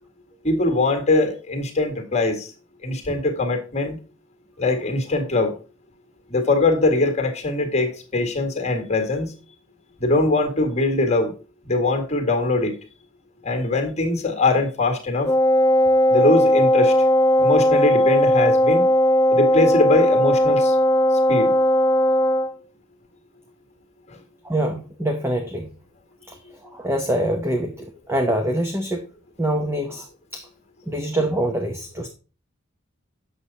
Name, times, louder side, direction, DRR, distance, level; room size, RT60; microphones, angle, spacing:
voice 1, 0.4-2.5 2.8-4.0 4.6-5.6 6.3-9.3 10.0-11.3 11.7-12.8 13.4-15.3 16.1-16.9 17.4-18.9 19.3-20.8 21.3-21.5, left 2 dB, 30° left, 5 dB, 1.8 m, -22 dB
Wind instrument woodwind instrument, 15.2-22.5, left 1 dB, 15° left, 0.3 m, -17 dB
voice 2, 24.4-25.7 26.3-26.4 26.7-29.0 29.4-30.1 30.3-30.5 30.9-32.1, right 1 dB, 10° right, 4 dB, 0.8 m, -24 dB
8.2 x 6.9 x 4.0 m, 0.34 s
head